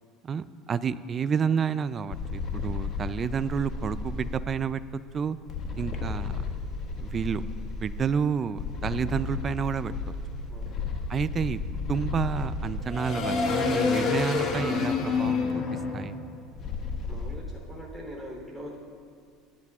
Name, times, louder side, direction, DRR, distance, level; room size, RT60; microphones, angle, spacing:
voice 1, 0.2-5.4 5.8-6.3 7.0-7.4 7.7-9.9 11.1-11.6 11.9-15.5 15.9-16.2, right 6 dB, 30° right, 14 dB, 0.4 m, -30 dB
sound 1, 2.1-4.4 5.5-8.0 8.6-17.3, left 4 dB, 45° left, 1.5 m, -30 dB
voice 2, 17.1-18.8, equal, ahead, -2 dB, 3.3 m, -42 dB
22.5 x 10.5 x 2.4 m, 2.3 s
supercardioid pair, 115°, 0 cm